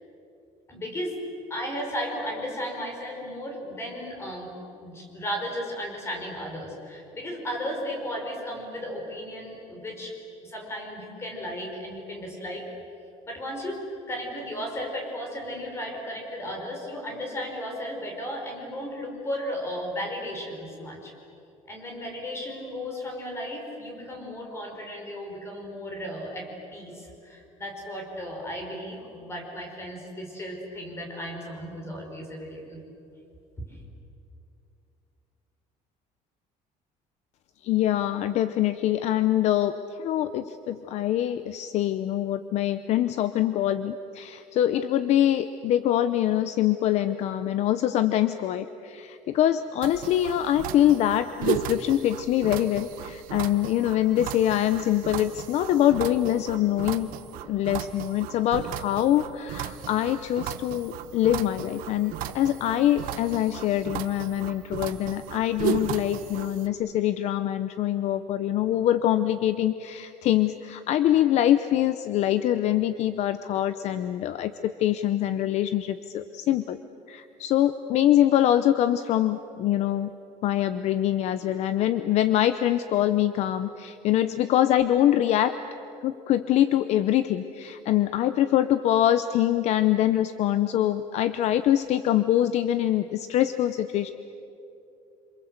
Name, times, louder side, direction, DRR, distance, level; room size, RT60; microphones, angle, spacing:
voice 1, 0.7-1.2 1.5-4.5 4.8-10.1 10.4-12.6 13.3-13.8 14.1-21.1 21.7-32.8, equal, 20° left, 1 dB, 5.5 m, -35 dB
voice 2, 37.6-39.7 40.0-57.1 57.5-76.8 77.1-80.1 80.4-85.6 86.0-94.1, left 12 dB, 50° left, 11 dB, 0.8 m, -24 dB
sound 1, 49.8-66.7, right 10 dB, 80° right, 1.3 m, -35 dB
27.5 x 27.0 x 8.1 m, 2.8 s
cardioid pair, 175°, 14 cm